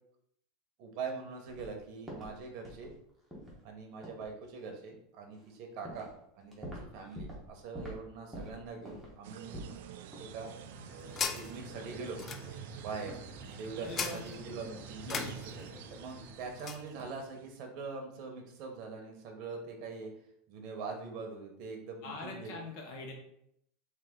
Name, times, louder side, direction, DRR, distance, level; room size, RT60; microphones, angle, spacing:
voice 1, 0.8-2.9 3.6-9.6 10.2-10.5 11.4-12.2 12.8-13.2 13.5-20.1 20.5-22.6, right 4 dB, 45° right, 2 dB, 0.9 m, -43 dB
sound 1, 1.5-1.7 2.1-3.0 3.3-3.6 4.0-4.3 5.4-5.5 5.9-6.1 6.4-7.5 7.8-8.0 8.3-9.8 10.1-10.3 10.7-10.8 11.9-12.6 13.1-13.3 13.8-14.1 14.4-14.6, equal, 5° right, 1.1 m, -46 dB
sound 2, 9.2-17.5, right 9 dB, 70° right, 0.3 m, -48 dB
sound 3, 10.3-16.9, left 6 dB, 25° left, 0.4 m, -42 dB
voice 2, 13.8-14.2 15.0-15.4 22.0-23.1, left 2 dB, 50° left, 1 dB, 1.2 m, -43 dB
3.9 x 2.7 x 3.7 m, 0.73 s
supercardioid pair, 150°, 0 cm